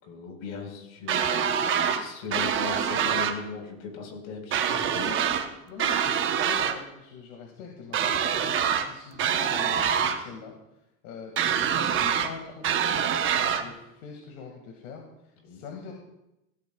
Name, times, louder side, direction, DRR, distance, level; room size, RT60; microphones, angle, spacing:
voice 1, 0.0-1.5 1.8-5.2 15.4-15.6, left 5 dB, 65° left, 2 dB, 4.4 m, -38 dB
sound 1, 1.1-2.0 2.3-3.4 4.5-5.5 5.8-6.8 7.9-8.9 9.2-10.2 11.4-12.3 12.6-13.6, right 8 dB, 30° right, 0.9 m, -25 dB
voice 2, 4.9-10.5 11.0-15.9, left 5 dB, 85° left, 1 dB, 2.1 m, -43 dB
16.0 x 14.0 x 2.3 m, 0.89 s
supercardioid pair, 150°, 43 cm